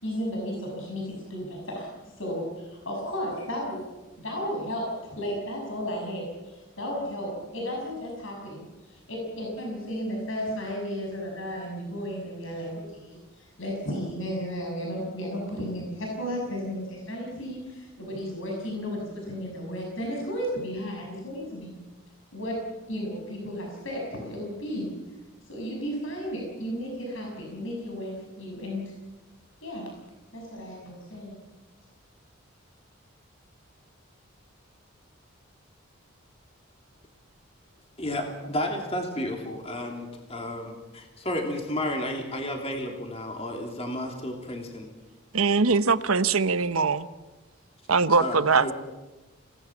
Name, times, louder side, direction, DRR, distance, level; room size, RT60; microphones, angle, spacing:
voice 1, 0.0-1.9 2.2-3.8 4.2-21.7 22.3-22.6 22.9-24.9 25.5-28.8 29.6-29.9 30.3-31.3, equal, 65° left, -1 dB, 6.5 m, -34 dB
voice 2, 38.0-44.9 48.2-48.7, left 1 dB, 30° left, 2 dB, 3.0 m, -32 dB
voice 3, 45.3-47.1 47.9-48.7, right 4 dB, 80° right, 13 dB, 1.0 m, -22 dB
28.0 x 18.5 x 7.2 m, 1.1 s
head